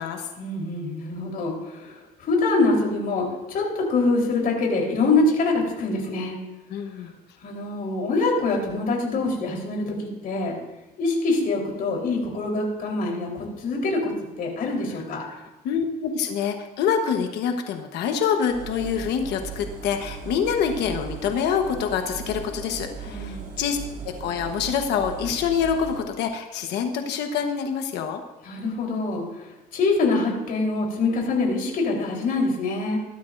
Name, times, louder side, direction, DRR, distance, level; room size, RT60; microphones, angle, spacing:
voice 1, 0.4-6.4 7.4-10.6 11.0-14.1 14.4-15.2 23.0-23.5 28.4-33.0, left 3 dB, 60° left, -1 dB, 3.9 m, -25 dB
voice 2, 6.7-7.1 15.3-15.4 15.6-23.8 24.0-28.2, left 7 dB, 80° left, 5 dB, 1.2 m, -26 dB
Engine, 18.5-26.0, right 6 dB, 55° right, 5.0 m, -38 dB
17.0 x 13.0 x 2.6 m, 1.1 s
cardioid pair, 110°, 17 cm